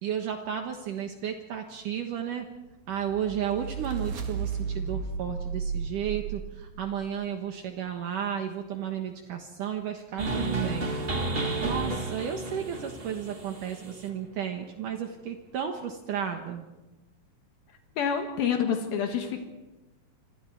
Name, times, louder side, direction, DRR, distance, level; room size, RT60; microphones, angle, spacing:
voice 1, 0.0-2.5 2.9-10.9 11.6-16.6, right 8 dB, 65° right, 4 dB, 2.8 m, -33 dB
sound 1, 2.9-7.1, right 6 dB, 85° right, 4.0 m, -34 dB
sound 2, 10.2-14.1, right 2 dB, 30° right, 1.1 m, -32 dB
voice 2, 18.0-19.4, left 7 dB, 80° left, 4 dB, 3.5 m, -27 dB
28.0 x 26.5 x 4.7 m, 1.0 s
omnidirectional pair, 4.2 m